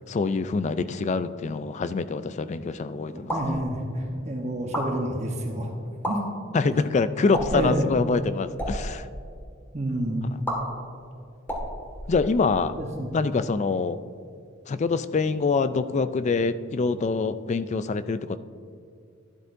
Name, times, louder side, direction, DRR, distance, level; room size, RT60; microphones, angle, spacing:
voice 1, 0.1-3.5 6.5-9.1 12.1-12.8 13.1-14.0 14.7-18.4, left 4 dB, 35° left, 13 dB, 0.3 m, -25 dB
voice 2, 3.1-5.7 6.0-6.2 6.6-6.8 7.5-7.8 9.7-10.2 12.8-13.1, right 1 dB, 35° right, 1 dB, 1.0 m, -29 dB
sound 1, 3.2-3.6 4.6-4.9 5.9-6.1 7.3-7.7 8.4-8.8 10.4-10.6 11.4-12.6, equal, 10° left, 1.8 m, -31 dB
11.5 x 11.5 x 2.6 m, 2.3 s
head